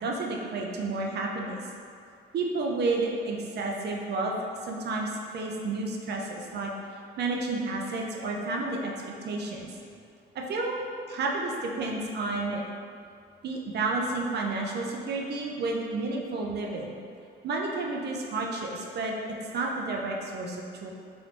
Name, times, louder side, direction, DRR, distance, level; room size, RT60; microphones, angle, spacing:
voice 1, 0.0-1.6 2.3-4.3 4.6-6.7 7.2-9.7 10.3-10.8 11.1-12.6 13.4-16.9 17.4-19.1 19.5-20.9, right 3 dB, 55° right, -1 dB, 0.5 m, -31 dB
3.1 x 2.6 x 3.2 m, 2.4 s
cardioid pair, 90°, 20 cm